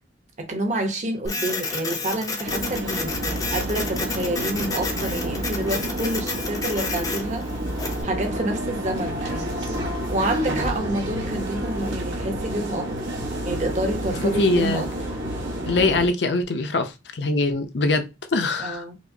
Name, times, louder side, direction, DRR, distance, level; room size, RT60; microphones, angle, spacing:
voice 1, 0.4-7.5 8.0-9.5 10.1-12.9 13.4-14.9 18.6-19.0, right 1 dB, 40° right, 0.7 m, -28 dB
Printer, 1.3-8.0, left 3 dB, 20° left, 0.5 m, -31 dB
sound 1, 2.4-16.1, right 1 dB, 85° right, 0.9 m, -29 dB
voice 2, 14.2-14.8 15.7-18.8, left 2 dB, 65° left, 0.6 m, -23 dB
4.8 x 2.0 x 2.6 m
head